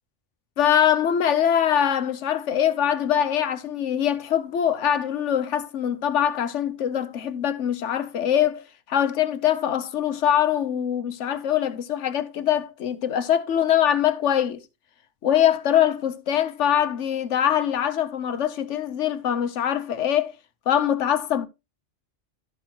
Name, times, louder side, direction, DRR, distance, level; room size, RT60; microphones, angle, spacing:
voice 1, 0.6-14.6 15.2-20.3 20.7-21.5, left 9 dB, 75° left, 1.1 m, -23 dB
12.5 x 6.0 x 2.9 m
omnidirectional pair, 1.3 m